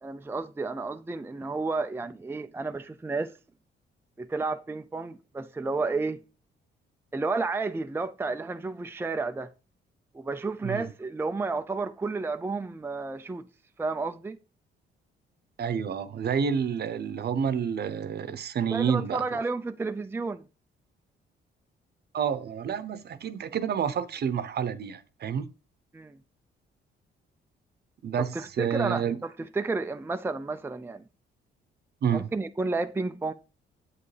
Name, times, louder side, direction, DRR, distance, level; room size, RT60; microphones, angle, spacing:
voice 1, 0.0-3.4 4.2-6.2 7.1-9.5 10.1-13.5 13.8-14.4 18.7-20.4 25.9-26.2 28.3-31.0 32.1-33.3, right 3 dB, 10° right, 0.5 m, -31 dB
voice 2, 15.6-19.2 22.1-25.5 28.0-29.2 32.0-32.3, right 7 dB, 55° right, 0.9 m, -29 dB
8.3 x 8.1 x 3.3 m
cardioid pair, 90°, 20 cm